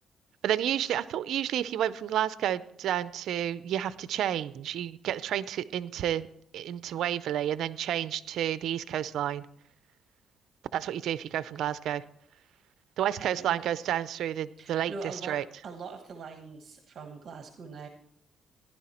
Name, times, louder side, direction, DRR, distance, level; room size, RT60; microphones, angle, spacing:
voice 1, 0.4-6.3 6.5-9.5 10.7-12.0 13.0-14.9 15.3-15.4, right 11 dB, 75° right, 16 dB, 0.5 m, -30 dB
voice 2, 13.2-13.6 14.6-15.4 15.6-17.9, right 4 dB, 55° right, 5 dB, 1.3 m, -42 dB
15.5 x 11.0 x 4.3 m, 0.73 s
cardioid pair, 90°, 0 cm